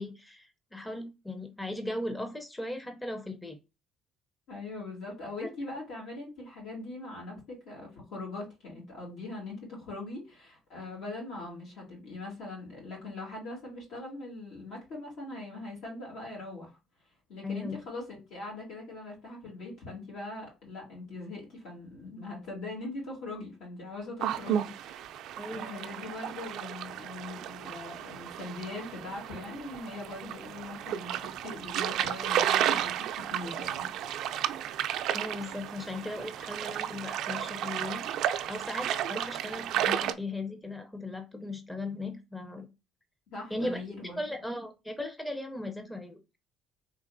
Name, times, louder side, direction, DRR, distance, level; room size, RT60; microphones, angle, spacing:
voice 1, 0.0-3.6 17.4-17.8 25.4-25.7 35.1-38.0 38.5-42.7 43.5-43.8 44.2-46.2, left 2 dB, 10° left, 6 dB, 0.6 m, -37 dB
voice 2, 4.5-16.8 17.3-25.1 25.5-34.2 43.3-44.2, left 2 dB, 80° left, -2 dB, 2.4 m, -41 dB
sound 1, 24.2-40.1, right 10 dB, 75° right, 0.3 m, -33 dB
4.0 x 2.9 x 2.5 m, 0.27 s
cardioid pair, 110°, 0 cm